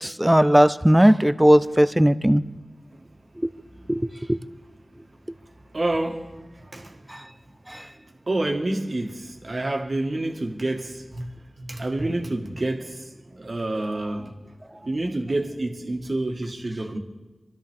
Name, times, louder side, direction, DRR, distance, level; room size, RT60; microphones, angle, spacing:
voice 1, 0.0-2.4 3.9-4.0 4.3-4.4, equal, 10° right, 0.6 m, -17 dB
voice 2, 5.7-6.3 6.6-7.0 8.3-11.3 11.6-14.3 14.7-17.0, right 2 dB, 55° right, 1.8 m, -28 dB
23.5 x 13.0 x 3.6 m
wide cardioid pair, 55°, 0 cm